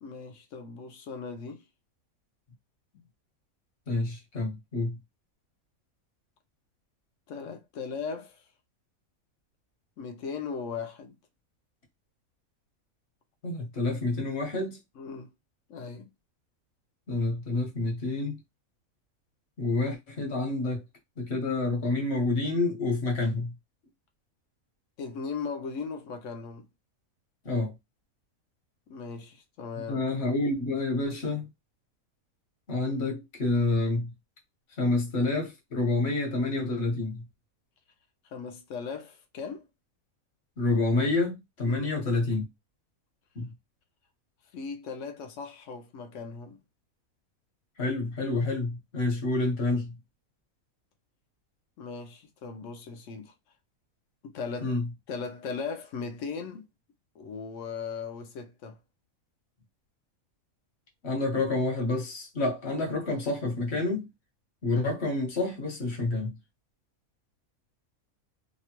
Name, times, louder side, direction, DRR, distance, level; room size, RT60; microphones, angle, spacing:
voice 1, 0.0-1.6 2.9-3.1 7.3-8.4 10.0-11.1 15.0-15.3 15.7-16.1 25.0-26.7 28.9-30.0 38.2-39.7 41.6-41.9 44.5-46.6 51.8-53.3 54.2-54.8 55.1-56.7 57.1-58.8, left 5 dB, 65° left, 0.9 m, -38 dB
voice 2, 3.9-5.0 13.4-14.8 17.1-18.4 19.6-20.8 21.2-23.5 27.4-27.7 29.9-31.5 32.7-34.1 34.8-37.2 40.6-42.5 43.3-43.5 47.8-49.9 54.6-54.9 61.0-64.1 64.6-66.3, left 2 dB, 50° left, 1.2 m, -28 dB
2.9 x 2.1 x 2.9 m
omnidirectional pair, 1.5 m